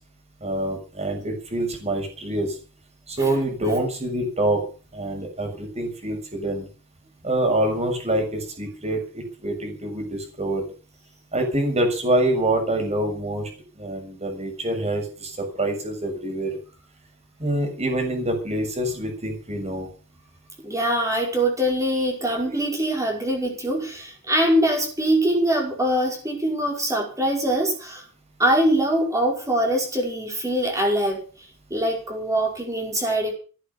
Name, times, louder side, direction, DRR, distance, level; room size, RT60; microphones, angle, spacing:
voice 1, 0.4-2.5 3.1-4.6 4.9-6.7 7.2-10.6 11.3-13.5 13.8-16.6 17.4-19.9, right 1 dB, 30° right, 3 dB, 6.8 m, -25 dB
voice 2, 20.6-28.1 28.4-31.2 31.7-33.3, right 1 dB, 15° right, 0 dB, 5.4 m, -23 dB
15.5 x 10.5 x 7.1 m, 0.38 s
head